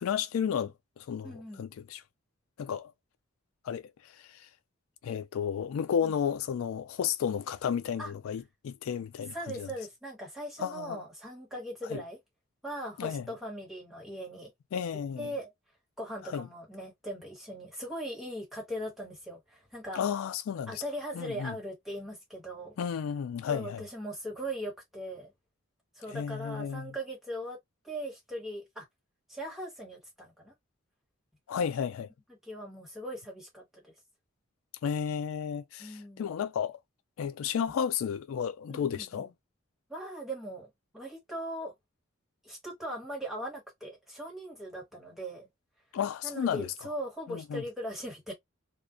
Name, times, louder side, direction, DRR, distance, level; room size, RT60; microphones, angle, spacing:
voice 1, 0.0-2.0 2.6-2.9 3.6-3.9 4.2-4.5 5.0-9.7 10.6-11.0 11.9-12.0 13.0-13.3 14.7-15.3 16.3-16.5 20.0-20.8 21.1-21.5 22.8-23.8 26.1-26.9 31.5-32.1 34.8-36.8 37.2-39.3 45.9-46.7 47.3-47.6, left 7 dB, 90° left, 0.3 m, -32 dB
voice 2, 1.2-1.6 6.0-6.1 8.0-8.1 9.3-12.2 12.6-14.5 15.1-15.5 16.0-20.0 20.7-22.7 23.5-25.3 26.0-27.6 27.8-28.9 29.3-30.5 32.4-33.8 35.8-36.3 38.7-39.3 39.9-40.7 40.9-41.7 42.4-45.5 46.2-48.3, right 1 dB, ahead, 1.1 m, -39 dB
2.3 x 2.1 x 2.4 m
head